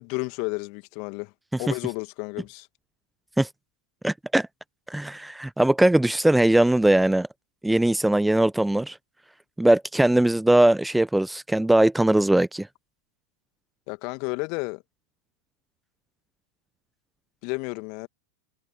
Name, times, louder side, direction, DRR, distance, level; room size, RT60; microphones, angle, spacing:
voice 1, 0.0-1.3 1.6-2.7 13.9-14.8 17.4-18.1, left 33 dB, 45° left, 2.4 m, -32 dB
voice 2, 4.0-4.5 4.9-7.3 7.6-9.0 9.6-12.7, right 1 dB, 5° right, 0.9 m, -20 dB
figure-of-eight pair, 90°, 0 cm